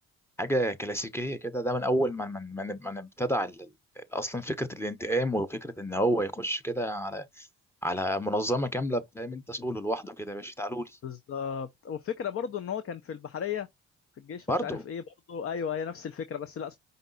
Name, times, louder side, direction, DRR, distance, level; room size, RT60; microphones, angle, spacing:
voice 1, 0.4-7.5 7.8-11.0 14.5-14.8, equal, 10° left, 1.0 m, -30 dB
voice 2, 11.0-13.7 14.2-16.8, left 7 dB, 50° left, 0.7 m, -35 dB
5.3 x 2.5 x 4.0 m
cardioid pair, 90°, 30 cm